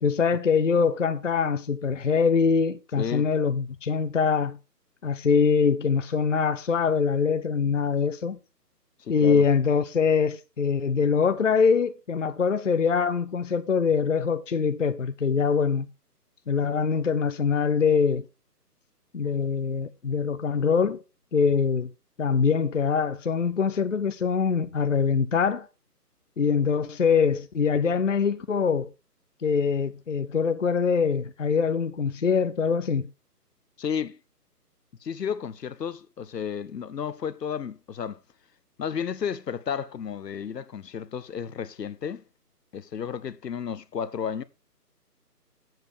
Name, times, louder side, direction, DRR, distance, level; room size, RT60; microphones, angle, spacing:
voice 1, 0.0-4.6 5.0-8.4 9.1-15.9 16.5-18.2 19.1-21.0 21.3-21.9 22.2-25.7 26.4-28.9 29.4-33.1, left 6 dB, 50° left, 0.6 m, -23 dB
voice 2, 3.0-3.3 9.0-9.4 33.8-34.2 35.0-38.2 38.8-42.2 42.7-44.4, left 7 dB, 80° left, 0.9 m, -32 dB
7.7 x 7.3 x 4.5 m
hypercardioid pair, 175°, 48 cm